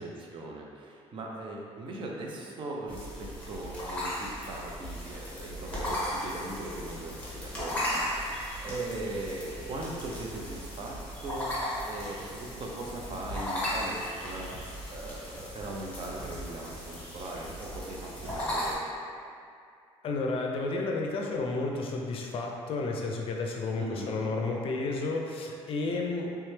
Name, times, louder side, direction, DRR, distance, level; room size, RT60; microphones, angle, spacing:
voice 1, 0.0-11.6 11.9-14.5 14.9-18.8 23.8-24.2, right 2 dB, 45° right, -1 dB, 0.6 m, -39 dB
sound 1, 2.9-18.7, left 1 dB, 10° left, 1.2 m, -36 dB
voice 2, 20.0-26.3, left 3 dB, 55° left, 0 dB, 0.5 m, -31 dB
3.3 x 3.1 x 3.3 m, 2.4 s
cardioid pair, 125°, 12 cm